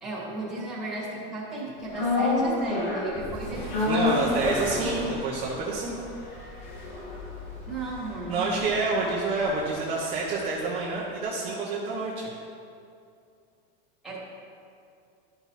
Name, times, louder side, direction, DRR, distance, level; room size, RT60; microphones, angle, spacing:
voice 1, 0.0-4.1 7.6-8.6 14.0-14.2, right 2 dB, ahead, -9 dB, 2.3 m, -34 dB
sound 1, 1.9-10.2 10.5-10.6, left 2 dB, 50° left, 2.2 m, -30 dB
voice 2, 3.9-6.0 8.3-12.3, right 3 dB, 20° right, -5 dB, 0.9 m, -28 dB
12.5 x 6.0 x 4.1 m, 2.5 s
supercardioid pair, 175°, 29 cm